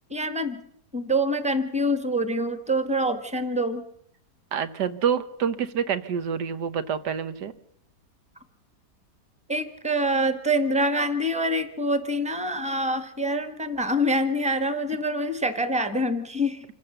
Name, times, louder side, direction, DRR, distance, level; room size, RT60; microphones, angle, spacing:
voice 1, 0.1-0.6 0.9-3.8 9.5-16.6, equal, 5° right, 11 dB, 1.3 m, -25 dB
voice 2, 4.5-7.5, right 7 dB, 75° right, 12 dB, 1.7 m, -27 dB
26.5 x 15.5 x 6.8 m, 0.71 s
omnidirectional pair, 1.9 m